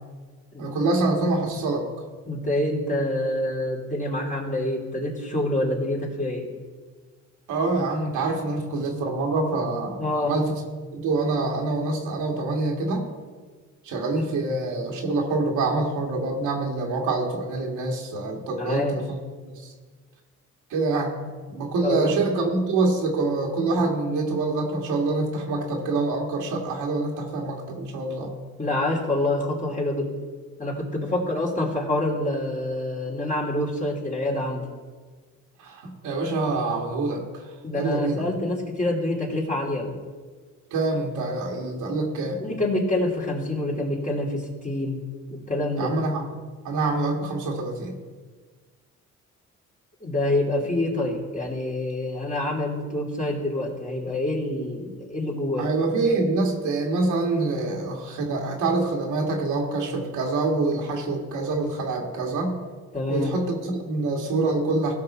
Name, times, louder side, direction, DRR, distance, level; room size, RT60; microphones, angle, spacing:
voice 1, 0.6-1.8 7.5-10.6 10.9-13.1 13.8-19.2 19.5-19.7 20.7-21.2 21.5-28.3 35.6-38.2 40.7-42.4 45.8-46.4 46.6-48.0 55.6-62.6 63.1-64.9, right 3 dB, 85° right, 0 dB, 2.0 m, -26 dB
voice 2, 2.3-6.5 10.0-10.3 18.6-18.9 21.8-22.1 28.6-30.1 30.6-34.6 37.6-39.9 42.4-45.0 45.3-45.9 50.0-55.7 62.9-63.3, left 1 dB, 25° left, -2 dB, 2.9 m, -26 dB
16.5 x 6.0 x 4.4 m, 1.4 s
cardioid pair, 90°, 30 cm